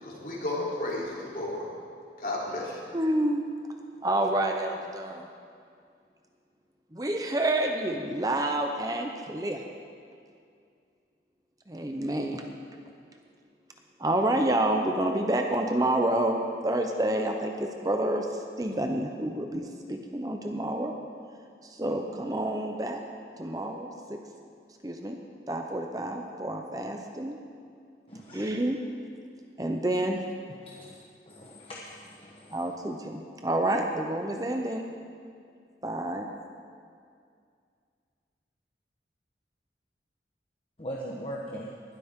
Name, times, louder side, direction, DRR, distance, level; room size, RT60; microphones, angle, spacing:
voice 1, 0.0-1.7 2.2-2.8, left 1 dB, 55° left, -5 dB, 3.3 m, -33 dB
voice 2, 2.9-3.4 4.0-5.3 6.9-9.6 11.7-12.5 14.0-20.9 21.6-23.0 23.4-24.2 24.8-25.2 25.5-27.4 28.3-28.8 29.6-30.2 32.5-34.9 35.8-36.3, right 1 dB, 20° right, 3 dB, 0.7 m, -28 dB
voice 3, 28.1-28.4 30.6-31.0 31.3-32.5 40.8-41.7, equal, 30° left, -3 dB, 1.1 m, -40 dB
19.5 x 12.5 x 3.7 m, 2.3 s
head